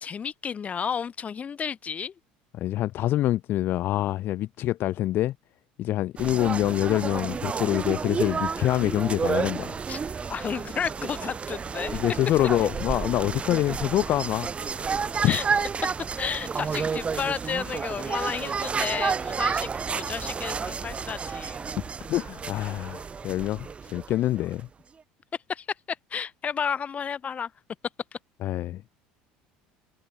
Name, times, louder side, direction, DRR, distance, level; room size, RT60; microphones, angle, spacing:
voice 1, 0.0-2.1 9.9-10.0 10.3-12.0 15.2-15.5 16.2-19.7 19.9-21.7 25.5-25.6 26.1-27.5, left 7 dB, 35° left, 1.2 m, -32 dB
voice 2, 2.5-5.3 5.8-9.8 11.9-14.5 15.2-15.4 22.1-24.7 28.4-28.9, left 14 dB, 55° left, 0.6 m, -26 dB
sound 1, 6.2-24.6, right 5 dB, 30° right, 0.9 m, -31 dB
hypercardioid pair, 85°, 4 cm